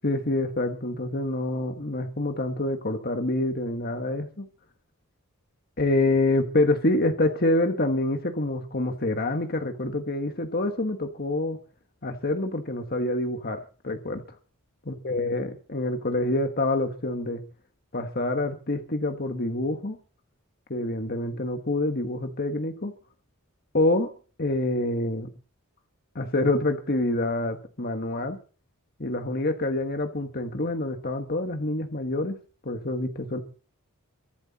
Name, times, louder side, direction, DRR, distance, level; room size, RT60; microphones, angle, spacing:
voice 1, 0.0-4.5 5.8-11.6 12.0-14.2 14.9-17.4 17.9-20.0 20.7-22.9 23.7-24.1 24.4-25.3 26.1-28.4 29.0-32.3 32.6-33.4, left 2 dB, 45° left, 5 dB, 1.5 m, -26 dB
23.5 x 11.0 x 4.2 m, 0.40 s
head